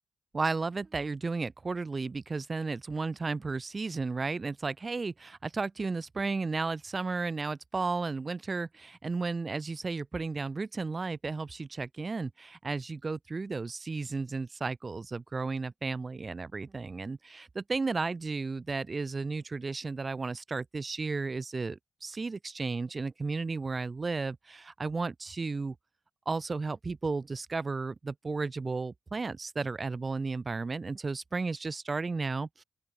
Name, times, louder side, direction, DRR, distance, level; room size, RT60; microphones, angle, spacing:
voice 1, 0.3-25.8 26.3-32.6, right 4 dB, 35° right, 2.1 m, -33 dB
open air
supercardioid pair, 45°, 0 cm